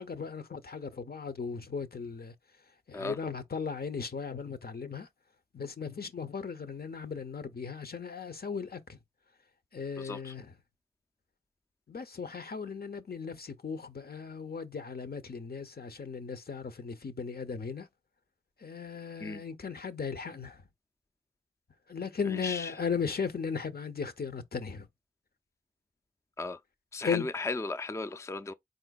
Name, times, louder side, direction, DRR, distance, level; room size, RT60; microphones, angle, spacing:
voice 1, 0.0-2.3 2.9-5.1 5.5-9.0 9.7-10.5 11.9-17.9 18.6-20.6 21.9-24.9 27.0-27.3, left 5 dB, 60° left, 0.7 m, -37 dB
voice 2, 10.0-10.3 19.2-19.4 22.3-22.7 26.4-26.6 26.9-28.5, left 3 dB, 15° left, 0.4 m, -36 dB
4.4 x 3.8 x 2.3 m
wide cardioid pair, 45°, 18 cm